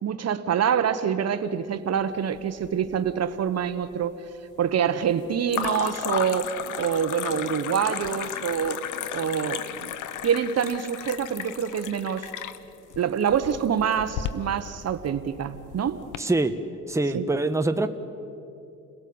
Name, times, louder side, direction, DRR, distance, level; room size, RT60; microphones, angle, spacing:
voice 1, 0.0-4.1 4.6-6.5 6.8-8.8 9.1-9.9 10.2-12.3 13.0-16.0 17.1-17.3, right 8 dB, 55° right, 10 dB, 1.2 m, -26 dB
sound 1, 2.3-3.1 3.4-4.0 5.5-16.2, left 10 dB, 80° left, 1.1 m, -34 dB
voice 2, 16.2-16.6 16.9-17.9, right 2 dB, 10° right, 7 dB, 1.3 m, -24 dB
29.5 x 17.0 x 8.8 m, 2.7 s
cardioid pair, 90°, 30 cm